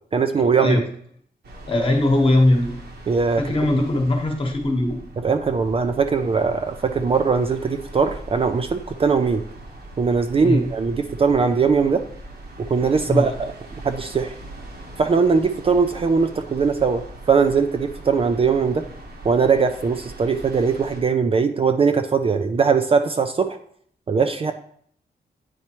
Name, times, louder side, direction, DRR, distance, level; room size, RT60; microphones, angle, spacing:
voice 1, 0.1-0.8 3.1-3.4 5.2-9.4 10.0-12.0 12.7-13.5 13.8-14.3 15.0-18.8 19.2-23.6 24.1-24.5, right 5 dB, 35° right, 7 dB, 0.3 m, -20 dB
sound 1, 1.4-21.0, right 2 dB, 75° right, 1.2 m, -40 dB
voice 2, 1.7-2.8 3.4-5.0 10.4-10.7 13.1-13.3, left 1 dB, 30° left, 2 dB, 1.1 m, -20 dB
9.2 x 4.4 x 2.9 m, 0.63 s
wide cardioid pair, 165°, 17 cm